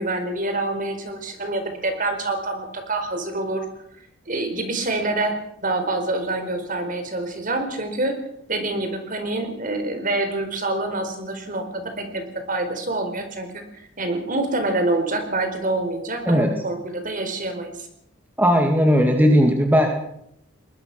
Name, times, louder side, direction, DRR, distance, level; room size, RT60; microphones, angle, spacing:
voice 1, 0.0-3.6 4.3-8.2 8.5-13.6 14.0-17.9, right 2 dB, 40° right, 6 dB, 4.5 m, -26 dB
voice 2, 18.4-19.9, equal, 10° right, 3 dB, 2.2 m, -17 dB
23.0 x 21.0 x 6.1 m, 0.74 s
head